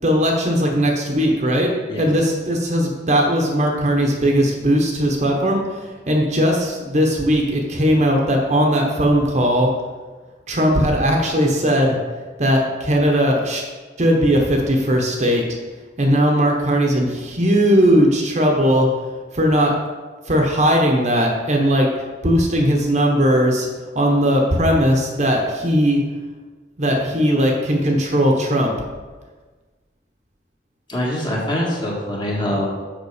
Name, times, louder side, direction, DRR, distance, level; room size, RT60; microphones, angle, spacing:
voice 1, 0.0-1.7 2.0-5.8 6.1-9.7 10.5-12.0 12.4-13.6 14.0-15.4 16.0-18.9 19.3-19.7 20.3-21.9 22.2-23.7 23.9-26.0 26.8-28.7, equal, 40° right, 1 dB, 1.0 m, -18 dB
voice 2, 30.9-32.7, left 1 dB, 25° left, -4 dB, 1.7 m, -23 dB
6.9 x 6.0 x 5.0 m, 1.4 s
head